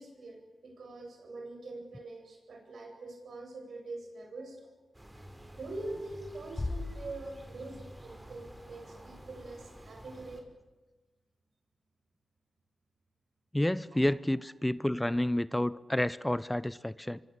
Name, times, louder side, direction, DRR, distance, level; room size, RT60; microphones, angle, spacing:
voice 1, 0.0-4.7 5.5-10.4 13.9-14.0, right 2 dB, 70° right, 4 dB, 7.7 m, -44 dB
sound 1, 4.9-10.4, equal, 15° right, 6.0 m, -50 dB
Bass drum, 6.6-8.0, left 2 dB, 30° left, 1.2 m, -38 dB
voice 2, 13.5-17.2, left 1 dB, 10° left, 17 dB, 0.8 m, -30 dB
24.5 x 24.0 x 8.4 m, 1.2 s
cardioid pair, 50°, 0 cm